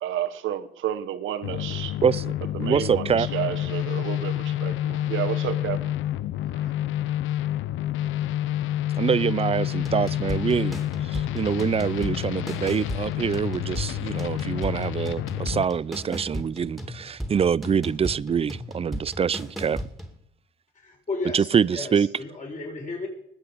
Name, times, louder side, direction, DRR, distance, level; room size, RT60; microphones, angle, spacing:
voice 1, 0.0-1.9 2.6-5.9, right 11 dB, 80° right, 1.2 m, -31 dB
sound 1, 1.4-15.6, left 13 dB, 80° left, 0.5 m, -29 dB
voice 2, 2.0-3.3 9.0-19.8 21.3-22.1, right 7 dB, 30° right, 0.4 m, -25 dB
sound 2, 9.8-20.2, equal, ahead, 2.4 m, -36 dB
voice 3, 20.7-23.1, left 3 dB, 40° left, 5.8 m, -34 dB
20.0 x 8.1 x 5.2 m
cardioid pair, 90°, 20 cm